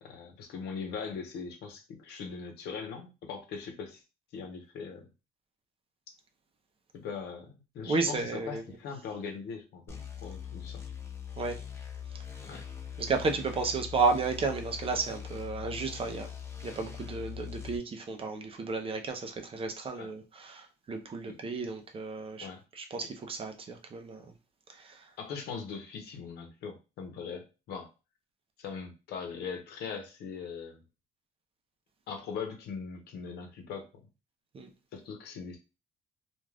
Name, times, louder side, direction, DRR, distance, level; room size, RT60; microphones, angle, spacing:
voice 1, 0.0-4.0 4.3-5.1 6.9-10.8 12.4-12.6 19.9-20.1 21.3-21.4 22.4-22.6 25.2-27.9 28.6-30.8 32.1-33.9 34.9-35.6, left 6 dB, 75° left, 0.9 m, -40 dB
voice 2, 7.8-8.6 11.4-11.6 13.0-16.3 16.6-22.5 22.7-24.2 24.7-25.1 34.5-34.7, right 4 dB, 35° right, 0.6 m, -32 dB
sound 1, 9.9-17.8, left 8 dB, 15° left, 0.6 m, -42 dB
2.4 x 2.3 x 3.3 m
cardioid pair, 110°, 17 cm